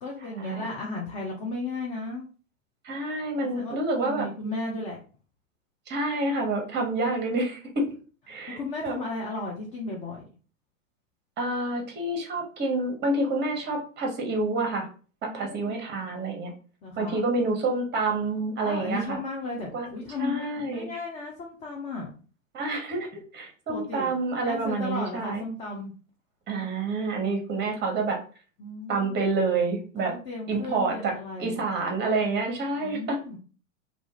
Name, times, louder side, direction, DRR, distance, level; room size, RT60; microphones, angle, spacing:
voice 1, 0.0-2.3 3.4-3.8 4.0-5.0 8.3-10.2 15.2-15.8 16.8-17.3 18.6-22.1 23.7-24.2 24.4-25.9 28.6-29.2 30.1-31.6 32.7-33.4, left 2 dB, 20° left, -1 dB, 0.3 m, -35 dB
voice 2, 2.8-4.3 5.9-7.8 8.3-8.6 8.8-9.0 11.4-14.9 15.2-16.5 17.0-19.2 19.7-19.9 20.2-20.9 22.5-25.4 26.5-28.2 28.9-30.1 30.5-31.1 31.4-33.2, right 3 dB, 25° right, 2 dB, 1.0 m, -28 dB
2.4 x 2.4 x 2.9 m, 0.38 s
hypercardioid pair, 105°, 40 cm